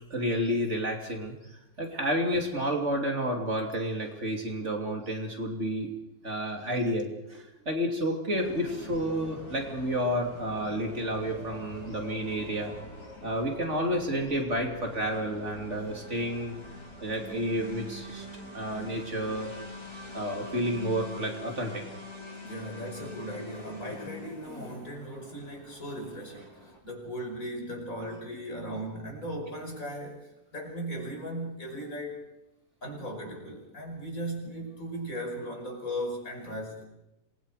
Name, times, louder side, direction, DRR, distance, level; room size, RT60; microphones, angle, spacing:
voice 1, 0.0-5.9 6.2-12.7 13.2-16.5 17.0-18.2 18.5-19.5 20.1-21.8, equal, 50° right, 2 dB, 3.3 m, -30 dB
sound 1, 8.3-26.8, left 2 dB, 85° left, 5.8 m, -44 dB
voice 2, 22.4-32.2 32.8-36.8, equal, 60° left, 2 dB, 5.8 m, -37 dB
27.0 x 22.0 x 5.0 m, 0.91 s
omnidirectional pair, 1.6 m